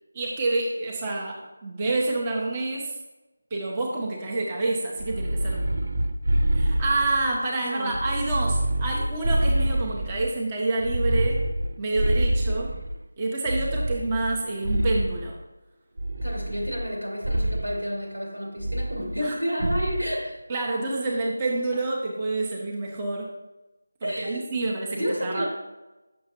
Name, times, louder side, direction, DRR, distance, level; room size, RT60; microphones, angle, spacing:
voice 1, 0.1-3.0 3.5-5.9 6.5-11.4 11.8-12.7 13.2-15.4 19.2-19.7 20.5-23.3 24.0-25.4, right 2 dB, 20° right, -2 dB, 0.7 m, -28 dB
sound 1, 5.0-7.4 7.9-10.3 10.8-13.0 13.5-15.3 16.0-16.9 17.2-17.7 18.6-19.3 19.6-20.1, right 1 dB, 60° right, 0.4 m, -26 dB
voice 2, 7.6-7.9 16.2-20.4 24.0-24.5 24.9-25.5, equal, 90° right, -1 dB, 2.5 m, -30 dB
6.6 x 6.4 x 2.9 m, 1.0 s
figure-of-eight pair, 165°, 0 cm